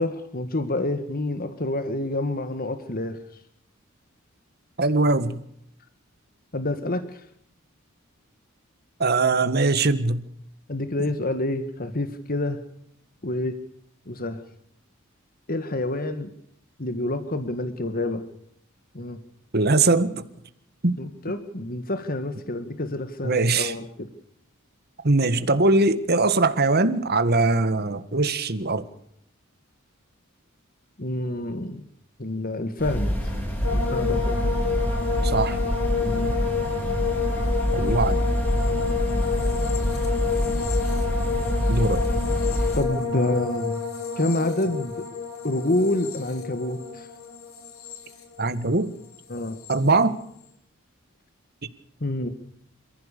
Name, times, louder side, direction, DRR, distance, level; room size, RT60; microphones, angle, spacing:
voice 1, 0.0-3.2 6.5-7.3 10.7-12.6 13.2-13.6 14.1-14.4 15.5-16.3 16.8-18.2 18.9-19.2 21.0-24.1 31.0-31.8 32.2-33.4 33.7-34.5 36.0-36.3 42.8-43.8 44.2-45.1 45.4-47.1 49.3-49.6 52.0-52.3, left 1 dB, 45° left, 1.8 m, -28 dB
voice 2, 4.8-5.4 9.0-10.2 19.5-20.2 20.8-21.0 23.2-23.7 25.0-28.9 35.2-35.6 37.7-38.2 41.7-42.0 48.4-48.9 49.7-50.2, right 3 dB, 50° right, 1.7 m, -21 dB
sound 1, 32.8-42.8, equal, 10° left, 5.9 m, -26 dB
sound 2, 33.6-48.9 49.1-49.8, left 5 dB, 80° left, 4.6 m, -29 dB
28.5 x 15.0 x 6.8 m
head